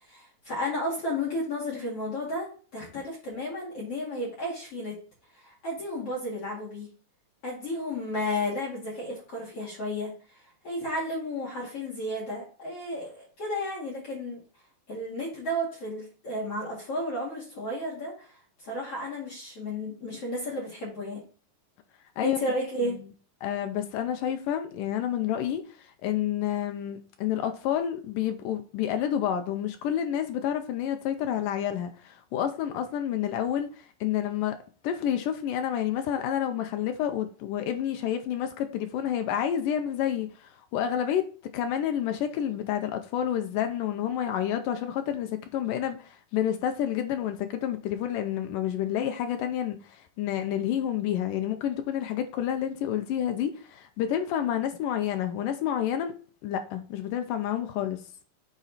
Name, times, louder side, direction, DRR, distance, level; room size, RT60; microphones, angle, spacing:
voice 1, 0.1-4.9 5.3-6.9 7.4-10.1 10.6-14.4 14.9-18.4 18.6-21.2 22.2-23.0, left 1 dB, 45° left, 3.0 m, -33 dB
voice 2, 23.4-25.6 26.0-34.6 34.8-41.2 41.5-56.2 56.4-58.0, left 10 dB, 75° left, 2.1 m, -29 dB
9.1 x 4.1 x 4.1 m
omnidirectional pair, 4.3 m